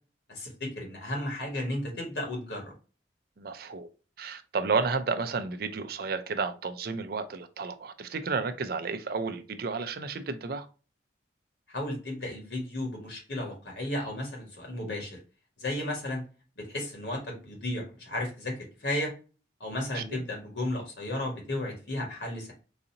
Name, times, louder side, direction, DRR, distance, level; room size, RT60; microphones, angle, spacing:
voice 1, 0.3-2.7 11.7-15.2 15.6-16.2 16.6-19.1 19.6-22.5, left 1 dB, 65° left, 1.8 m, -34 dB
voice 2, 3.4-3.9 4.2-10.7 20.0-20.2, right 4 dB, 55° right, 0.5 m, -32 dB
4.0 x 2.6 x 2.7 m
head